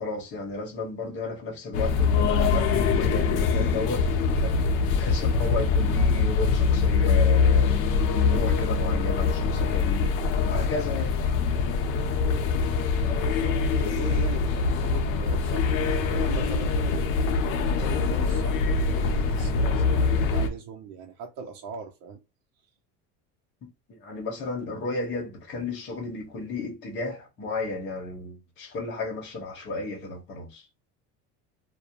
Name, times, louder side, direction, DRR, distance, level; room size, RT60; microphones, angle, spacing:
voice 1, 0.0-7.8 8.3-10.1 10.4-11.2 23.6-30.7, left 3 dB, 35° left, 0.9 m, -33 dB
sound 1, 1.7-20.5, left 4 dB, 70° left, 0.6 m, -23 dB
voice 2, 13.2-17.1 17.5-22.2, right 6 dB, 55° right, 0.5 m, -40 dB
2.4 x 2.1 x 2.7 m
cardioid pair, 165°, 32 cm